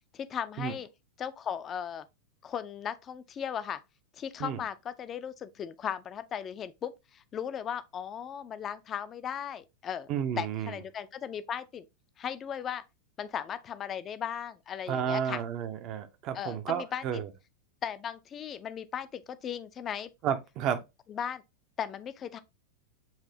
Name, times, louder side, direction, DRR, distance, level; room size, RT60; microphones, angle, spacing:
voice 1, 0.1-0.9 1.2-2.0 2.4-3.8 4.1-10.1 10.4-11.9 12.2-12.8 13.2-15.4 16.3-17.2 17.8-20.1 21.1-21.4 21.8-22.4, left 8 dB, 25° left, 0.4 m, -37 dB
voice 2, 10.1-10.8 14.9-17.3 20.2-20.8, right 8 dB, 40° right, 0.6 m, -32 dB
7.2 x 2.7 x 2.7 m
figure-of-eight pair, 90°, 0 cm